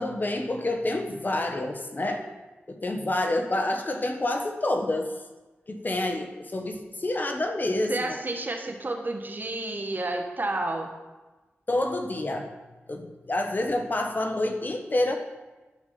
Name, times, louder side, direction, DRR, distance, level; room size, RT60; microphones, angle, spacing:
voice 1, 0.0-2.3 2.7-5.2 5.7-8.1 11.7-12.5 12.9-15.2, left 1 dB, 45° left, 4 dB, 1.3 m, -28 dB
voice 2, 7.9-10.9, right 2 dB, 45° right, 3 dB, 1.4 m, -30 dB
12.0 x 4.9 x 5.7 m, 1.2 s
cardioid pair, 40°, 4 cm